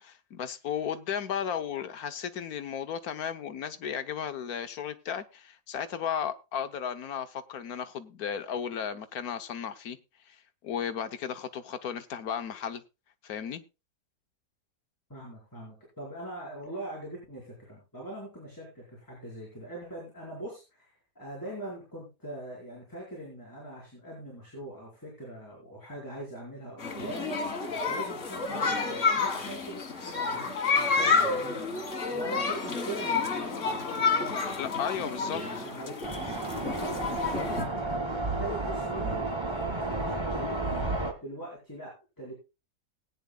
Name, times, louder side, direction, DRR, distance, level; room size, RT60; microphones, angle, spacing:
voice 1, 0.0-10.0 10.3-10.4 10.6-12.8 13.2-13.6 34.6-35.7, left 8 dB, 70° left, 1.4 m, -34 dB
voice 2, 15.1-27.3 27.8-34.7 34.9-36.1 36.5-42.3, right 1 dB, 10° left, 4.7 m, -42 dB
sound 1, 26.8-37.7, left 4 dB, 50° left, 2.1 m, -29 dB
sound 2, 36.0-41.1, right 2 dB, 15° right, 1.5 m, -32 dB
19.5 x 9.5 x 2.3 m
omnidirectional pair, 1.7 m